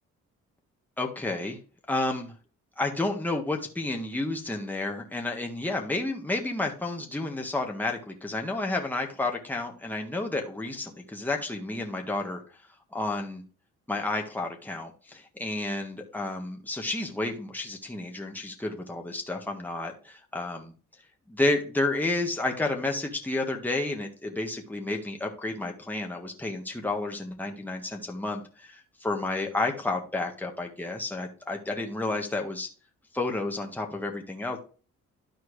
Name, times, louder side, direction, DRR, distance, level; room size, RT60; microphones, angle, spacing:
voice 1, 1.0-1.6 1.9-2.3 2.8-12.4 12.9-13.4 13.9-20.7 21.3-32.7 33.1-34.6, left 2 dB, 5° left, 1 dB, 1.6 m, -31 dB
12.5 x 4.4 x 3.2 m, 0.37 s
cardioid pair, 90°, 30 cm